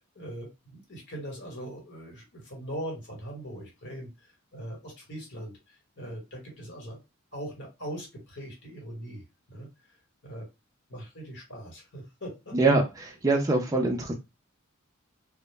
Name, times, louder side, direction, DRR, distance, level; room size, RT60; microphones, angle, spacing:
voice 1, 0.0-7.0 7.3-9.7 10.2-10.5 10.9-12.6, equal, 60° left, 1.1 m, -41 dB
voice 2, 12.5-14.1, right 3 dB, 15° right, 0.3 m, -24 dB
2.0 x 2.0 x 3.2 m
head